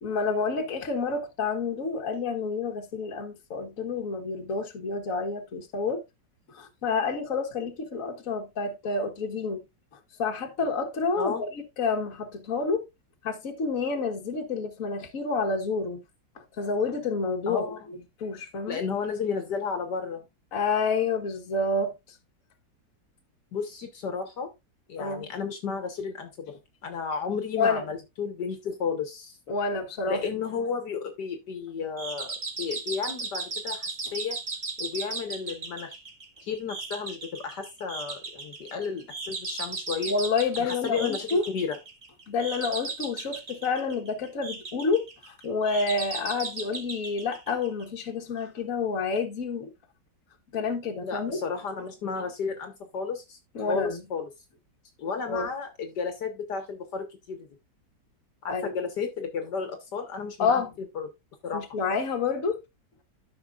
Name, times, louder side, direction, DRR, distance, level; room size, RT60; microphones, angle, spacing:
voice 1, 0.0-6.0 6.5-9.6 10.2-11.5 11.8-12.8 13.2-16.0 16.6-18.8 20.5-21.9 25.0-25.3 27.6-27.8 29.5-30.2 40.1-41.4 42.3-49.7 50.5-51.4 53.5-54.0 55.3-55.5 58.5-58.7 60.4-60.7 61.5-62.6, left 4 dB, 50° left, 1.7 m, -29 dB
voice 2, 17.5-17.8 18.7-20.2 23.5-24.5 24.9-26.5 26.8-29.4 30.1-34.4 34.8-36.0 36.4-40.1 40.6-41.8 51.0-53.4 53.7-54.3 55.0-57.5 58.4-60.6 61.0-61.1 61.4-61.7, left 5 dB, 70° left, 1.8 m, -33 dB
sound 1, 32.0-48.1, right 4 dB, 30° right, 1.1 m, -37 dB
13.0 x 5.8 x 2.4 m
omnidirectional pair, 1.9 m